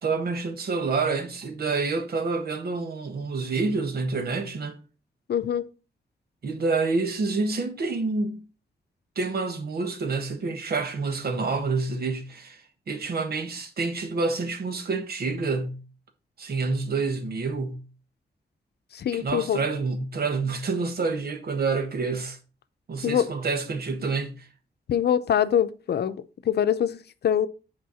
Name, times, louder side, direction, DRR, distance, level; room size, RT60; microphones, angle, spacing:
voice 1, 0.0-4.8 6.4-8.4 9.1-15.8 16.4-17.8 19.1-22.4 22.9-24.5, right 4 dB, 65° right, 1.4 m, -28 dB
voice 2, 5.3-5.7 18.9-19.6 23.0-23.3 24.9-27.5, left 9 dB, 70° left, 0.6 m, -24 dB
7.7 x 4.5 x 5.5 m
wide cardioid pair, 120°, 17 cm